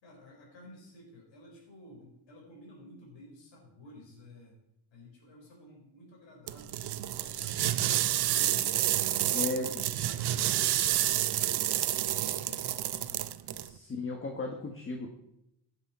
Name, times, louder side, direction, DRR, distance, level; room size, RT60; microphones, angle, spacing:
voice 1, 0.0-4.6 4.9-13.5, left 1 dB, 85° left, -2 dB, 4.6 m, -53 dB
sound 1, 6.5-13.7, right 12 dB, 65° right, 0.7 m, -29 dB
voice 2, 9.3-9.7 13.5-15.1, left 3 dB, 30° left, 3 dB, 1.4 m, -35 dB
16.0 x 9.7 x 4.3 m, 0.83 s
cardioid pair, 140°, 43 cm